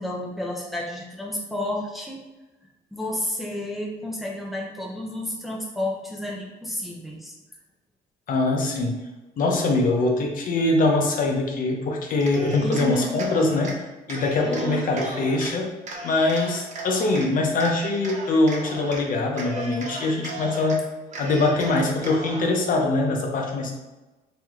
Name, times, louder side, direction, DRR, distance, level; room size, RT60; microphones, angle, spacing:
voice 1, 0.0-2.2 2.9-7.4 12.6-13.2 14.5-14.9, left 1 dB, ahead, -2 dB, 0.7 m, -31 dB
voice 2, 8.3-8.9 9.4-13.7 14.1-15.7 16.0-20.8 21.2-23.7, left 2 dB, 55° left, 1 dB, 0.7 m, -23 dB
Cheering, 12.1-13.8 14.1-15.5 15.8-17.3 17.6-19.0 19.3-20.8 21.1-22.5, right 2 dB, 45° right, 0.8 m, -36 dB
3.1 x 3.0 x 3.6 m, 1.1 s
cardioid pair, 110°, 17 cm